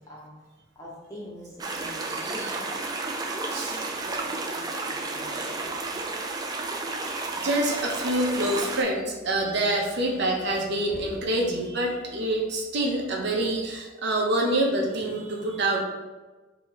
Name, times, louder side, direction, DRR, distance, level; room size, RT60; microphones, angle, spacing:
voice 1, 0.7-2.7 3.2-6.2 10.9-11.0, equal, 15° left, -4 dB, 0.9 m, -44 dB
sound 1, 1.6-8.8, right 3 dB, 20° right, 0.3 m, -32 dB
voice 2, 7.3-15.8, right 1 dB, 55° right, 0 dB, 0.7 m, -26 dB
3.7 x 2.8 x 4.0 m, 1.2 s
head